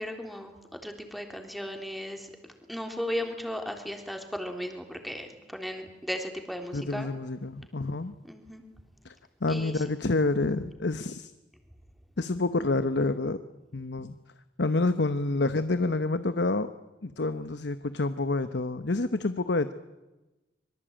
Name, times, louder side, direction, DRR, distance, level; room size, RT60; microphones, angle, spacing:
voice 1, 0.0-2.3 2.7-7.1 8.3-8.6 9.5-9.7, equal, ahead, 4 dB, 3.6 m, -36 dB
voice 2, 6.7-8.1 9.0-9.1 9.4-11.3 12.2-13.4 13.7-14.1 14.6-16.7 17.0-19.7, left 2 dB, 75° left, 11 dB, 1.0 m, -28 dB
25.5 x 23.0 x 9.0 m, 1.1 s
head